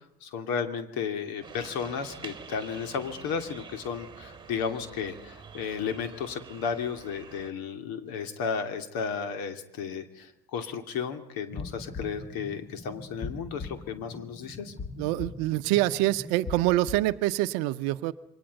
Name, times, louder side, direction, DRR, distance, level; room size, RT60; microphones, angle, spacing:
voice 1, 0.2-14.7, left 6 dB, 45° left, 8 dB, 2.8 m, -33 dB
sound 1, 1.4-7.5, right 5 dB, 10° right, 3.0 m, -47 dB
sound 2, 11.5-17.2, left 4 dB, 10° left, 1.2 m, -41 dB
voice 2, 15.0-18.1, right 17 dB, 45° right, 12 dB, 1.0 m, -26 dB
28.0 x 24.0 x 5.4 m, 0.73 s
figure-of-eight pair, 75°, 47 cm